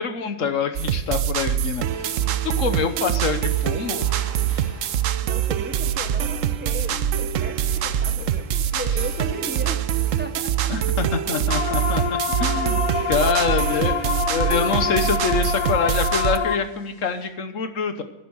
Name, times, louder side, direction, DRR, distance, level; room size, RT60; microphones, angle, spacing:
voice 1, 0.0-2.1 2.4-4.1 10.7-12.0 12.4-12.8 13.1-18.0, left 5 dB, 65° left, 9 dB, 1.4 m, -25 dB
sound 1, 0.8-16.4, right 10 dB, 70° right, 1.0 m, -24 dB
sound 2, 1.9-17.3, left 1 dB, 45° left, 2.8 m, -49 dB
voice 2, 5.2-9.8 10.2-10.7, equal, 15° right, 8 dB, 0.3 m, -36 dB
sound 3, 11.5-16.6, left 7 dB, 80° left, 1.2 m, -26 dB
11.5 x 10.0 x 6.3 m, 1.0 s
omnidirectional pair, 1.5 m